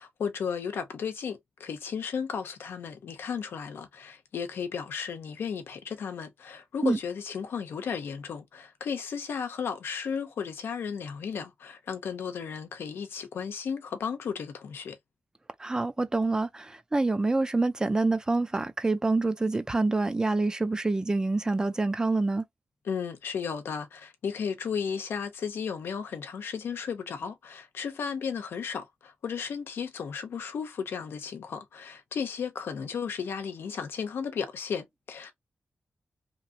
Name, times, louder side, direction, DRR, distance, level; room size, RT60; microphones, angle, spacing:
voice 1, 0.0-15.0 22.8-35.3, left 6 dB, 90° left, 0.7 m, -34 dB
voice 2, 15.6-22.4, right 3 dB, 20° right, 0.4 m, -26 dB
2.9 x 2.5 x 2.8 m
wide cardioid pair, 125°, 4 cm